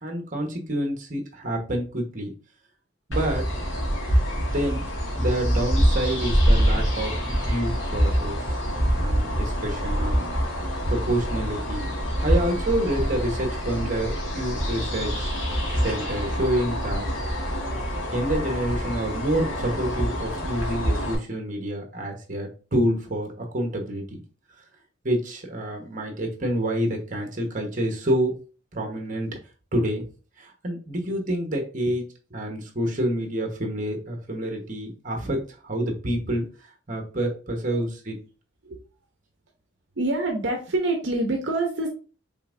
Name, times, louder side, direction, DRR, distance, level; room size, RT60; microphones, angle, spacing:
voice 1, 0.0-2.3 3.1-3.5 4.5-4.8 5.2-10.2 10.5-11.9 12.2-15.3 15.7-17.1 18.1-24.2 25.0-28.3 28.7-29.4 29.7-30.0 30.4-32.0 32.3-36.4 36.9-38.2, right 1 dB, 40° right, 2 dB, 1.2 m, -28 dB
sound 1, 3.1-21.1, equal, 70° left, 1.8 m, -25 dB
voice 2, 40.0-41.9, right 2 dB, 65° right, 2 dB, 0.8 m, -26 dB
5.5 x 3.5 x 2.6 m, 0.36 s
head